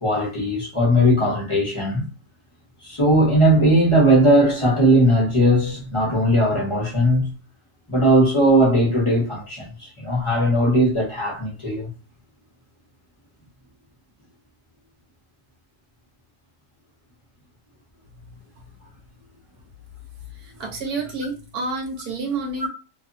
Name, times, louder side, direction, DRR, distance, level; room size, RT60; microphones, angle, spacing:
voice 1, 0.0-2.1 2.8-7.3 7.9-11.9, right 1 dB, 30° left, 0.6 m, -18 dB
voice 2, 20.3-22.7, right 3 dB, 65° right, 1.2 m, -29 dB
3.2 x 2.0 x 2.6 m
omnidirectional pair, 1.9 m